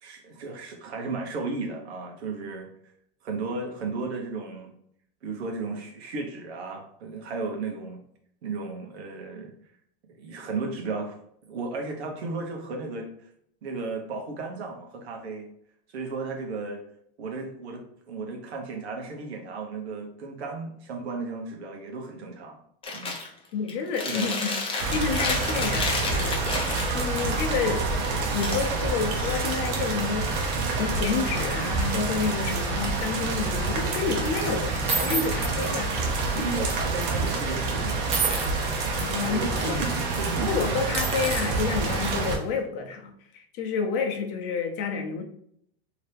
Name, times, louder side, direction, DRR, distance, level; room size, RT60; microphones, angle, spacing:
voice 1, 0.0-2.7 3.2-4.7 5.2-8.0 8.4-9.5 10.1-11.1 11.5-13.3 13.6-15.5 15.9-16.8 17.2-22.6 22.9-23.2 24.1-24.3 36.3-38.8 39.2-41.2, right 3 dB, 85° right, 2 dB, 1.0 m, -34 dB
Chewing mastication, 22.8-23.3 23.7-27.2 28.3-29.8, left 3 dB, 15° left, 0.7 m, -31 dB
voice 2, 23.5-24.5 24.9-30.3 30.8-36.5 39.0-39.9 40.4-45.2, left 5 dB, 55° left, 4 dB, 0.8 m, -30 dB
sound 1, 24.8-42.4, right 3 dB, 55° right, 0.9 m, -28 dB
sound 2, 34.9-36.8 37.1-37.3 38.1-39.3 39.7-39.9 40.2-40.3 40.8-42.4, right 4 dB, 20° right, 0.7 m, -32 dB
2.9 x 2.8 x 3.3 m, 0.68 s
supercardioid pair, 115°, 32 cm